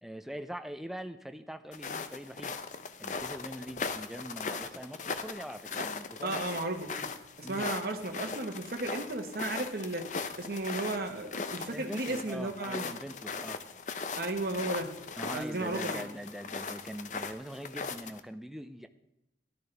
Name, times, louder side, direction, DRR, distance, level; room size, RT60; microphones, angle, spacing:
voice 1, 0.0-2.5 3.0-6.4 7.4-7.7 11.7-13.6 15.2-18.9, equal, ahead, 8 dB, 0.5 m, -42 dB
sound 1, 1.7-18.2, left 4 dB, 40° left, 0.6 m, -39 dB
voice 2, 6.2-12.9 14.2-15.0 15.3-16.1, right 2 dB, 55° right, 4 dB, 1.3 m, -35 dB
14.0 x 12.0 x 3.4 m, 0.84 s
head